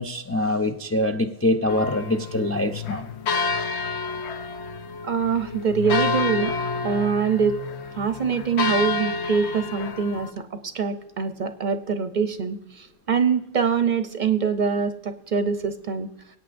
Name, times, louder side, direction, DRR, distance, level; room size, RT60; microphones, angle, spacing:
voice 1, 0.0-3.1, left 1 dB, 25° left, 4 dB, 0.3 m, -24 dB
sound 1, 1.7-10.3, left 4 dB, 80° left, 1.0 m, -29 dB
voice 2, 5.0-6.5 6.8-7.6 7.9-16.1, right 6 dB, 50° right, 9 dB, 0.7 m, -24 dB
23.0 x 8.9 x 2.5 m, 0.82 s
omnidirectional pair, 1.1 m